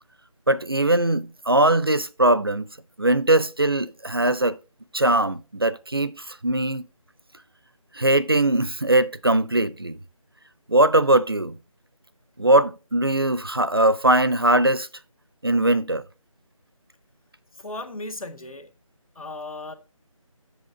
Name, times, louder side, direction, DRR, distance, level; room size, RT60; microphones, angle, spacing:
voice 1, 0.5-2.7 3.0-4.6 4.9-6.8 7.9-10.0 10.7-11.5 12.4-14.9 15.4-16.0, right 1 dB, 45° right, 0.4 m, -20 dB
voice 2, 17.6-18.7 19.2-19.7, left 2 dB, 80° left, 1.8 m, -36 dB
7.8 x 6.7 x 3.7 m
figure-of-eight pair, 180°, 18 cm